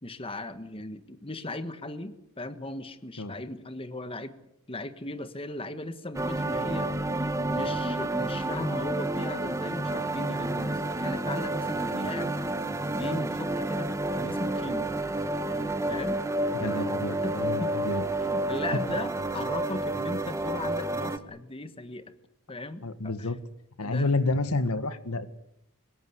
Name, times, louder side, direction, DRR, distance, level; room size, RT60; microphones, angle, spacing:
voice 1, 0.0-4.3 4.7-6.9 7.2-12.4 12.9-14.9 15.5-16.2 16.7-16.9 17.2-17.7 18.2-22.1 22.5-23.3 23.8-24.1, left 2 dB, 25° left, 10 dB, 1.5 m, -37 dB
sound 1, 6.1-21.2, right 2 dB, 15° right, 1.4 m, -30 dB
voice 2, 16.5-18.0 22.8-23.4 23.8-25.3, left 2 dB, 90° left, 11 dB, 1.8 m, -29 dB
24.5 x 22.0 x 8.1 m, 0.78 s
head